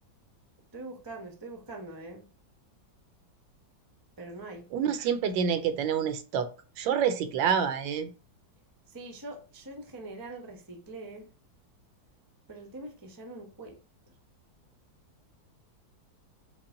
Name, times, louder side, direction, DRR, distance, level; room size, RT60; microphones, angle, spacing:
voice 1, 0.7-2.3 4.2-4.6 8.9-11.3 12.5-13.7, right 2 dB, 30° right, 0.4 m, -43 dB
voice 2, 4.7-6.5 6.8-8.1, right 7 dB, 80° right, 1.3 m, -27 dB
5.6 x 2.2 x 3.6 m
omnidirectional pair, 2.1 m